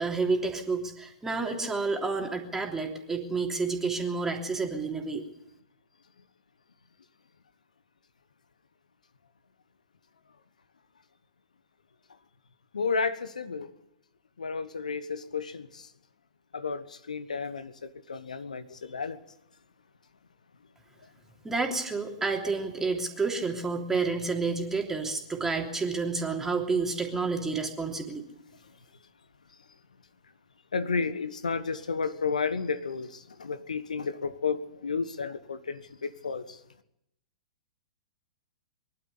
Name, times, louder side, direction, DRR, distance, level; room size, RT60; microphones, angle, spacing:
voice 1, 0.0-5.2 21.4-28.2, right 4 dB, 10° right, 3.2 m, -30 dB
voice 2, 12.7-13.7 14.4-15.9 16.5-19.2 30.7-36.6, left 5 dB, 75° left, 1.3 m, -32 dB
23.5 x 12.0 x 9.9 m
figure-of-eight pair, 105°, 4 cm